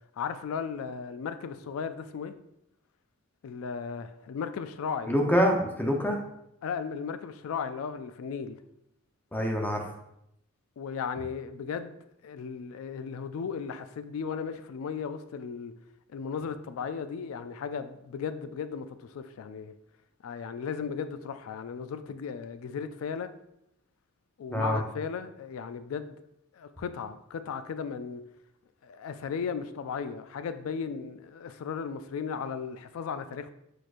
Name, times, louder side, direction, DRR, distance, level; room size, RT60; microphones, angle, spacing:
voice 1, 0.2-2.3 3.4-5.1 6.6-8.6 10.8-12.0 12.2-15.7 16.1-19.7 20.2-23.3 24.4-26.2 26.5-28.2 28.8-33.5, left 6 dB, 80° left, 0.3 m, -36 dB
voice 2, 5.1-6.2 9.3-9.9 24.5-24.8, equal, 10° left, 0.6 m, -25 dB
4.7 x 4.3 x 2.5 m
head